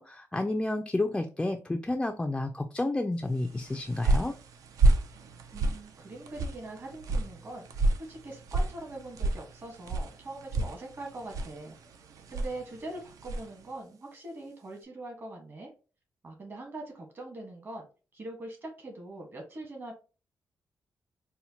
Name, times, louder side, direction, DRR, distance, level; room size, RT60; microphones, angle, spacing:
voice 1, 0.0-4.3, left 2 dB, 15° left, 4 dB, 0.3 m, -30 dB
sound 1, 3.5-13.6, right 2 dB, 75° right, 0.5 m, -30 dB
voice 2, 5.5-11.7 12.3-15.7 16.2-17.9 18.1-19.9, right 2 dB, 40° right, 2 dB, 1.2 m, -42 dB
4.3 x 2.1 x 2.8 m, 0.34 s
cardioid pair, 120°, 6 cm